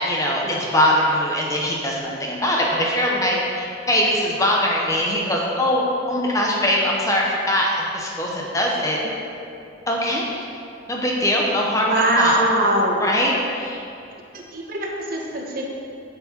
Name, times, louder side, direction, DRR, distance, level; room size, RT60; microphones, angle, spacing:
voice 1, 0.0-9.0 9.9-10.4 10.9-12.5 13.0-13.8, left 1 dB, 15° left, -2 dB, 0.9 m, -22 dB
voice 2, 11.8-13.0 14.3-15.6, right 1 dB, 50° right, -1 dB, 1.1 m, -22 dB
7.7 x 7.0 x 4.4 m, 2.6 s
head